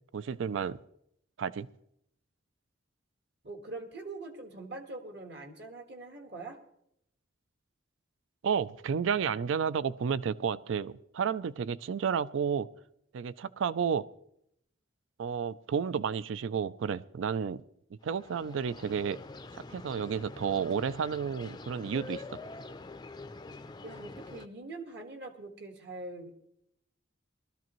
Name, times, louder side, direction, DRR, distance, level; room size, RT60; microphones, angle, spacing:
voice 1, 0.1-0.8 1.4-1.7 8.4-12.7 13.1-14.1 15.2-17.6 18.0-19.2 19.5-22.2, right 7 dB, 75° right, 18 dB, 0.4 m, -31 dB
voice 2, 3.4-6.6 23.8-26.3, right 2 dB, 60° right, 5 dB, 1.6 m, -43 dB
sound 1, 18.0-24.5, left 3 dB, 20° left, 0.4 m, -46 dB
19.5 x 13.0 x 3.0 m, 0.75 s
head